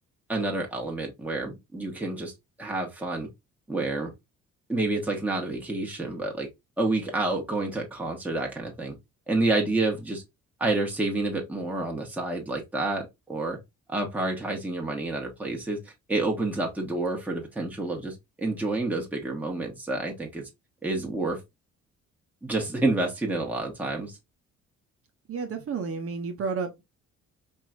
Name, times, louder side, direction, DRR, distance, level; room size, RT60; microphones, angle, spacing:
voice 1, 0.3-2.3 2.6-3.3 3.7-4.1 4.7-6.5 6.8-8.9 9.3-10.2 10.6-13.6 13.9-20.5 20.8-21.4 22.4-24.2, right 2 dB, 5° right, 1.2 m, -29 dB
voice 2, 25.3-26.8, right 5 dB, 50° right, 0.9 m, -31 dB
4.5 x 3.0 x 2.4 m
cardioid pair, 90°, 30 cm